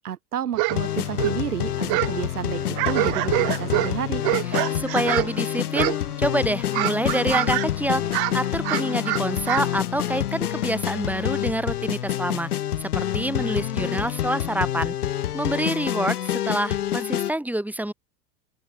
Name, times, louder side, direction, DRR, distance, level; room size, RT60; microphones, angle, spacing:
voice 1, 0.0-4.2, right 9 dB, 90° right, 4.3 m, -31 dB
sound 1, 0.5-0.8 1.1-2.2 2.5-5.4 5.7-6.2 6.5-7.7 8.0-9.7, right 29 dB, 55° right, 1.1 m, -26 dB
sound 2, 0.7-17.3, left 11 dB, 90° left, 1.2 m, -27 dB
voice 2, 4.5-8.0 8.3-12.5 12.8-14.9 15.3-17.9, right 1 dB, 5° right, 4.8 m, -27 dB
open air
hypercardioid pair, 85°, 44 cm